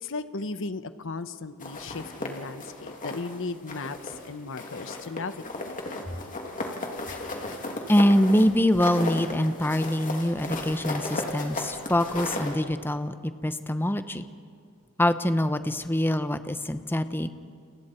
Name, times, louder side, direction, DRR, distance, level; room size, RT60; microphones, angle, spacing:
voice 1, 0.0-5.7, left 3 dB, 60° left, 11 dB, 1.0 m, -36 dB
sound 1, 1.6-3.3 3.7-4.3 4.6-12.5, left 2 dB, 40° left, 2.7 m, -35 dB
voice 2, 7.9-14.3 15.0-17.3, left 1 dB, 10° left, 11 dB, 0.8 m, -24 dB
29.5 x 29.0 x 4.4 m, 2.2 s
head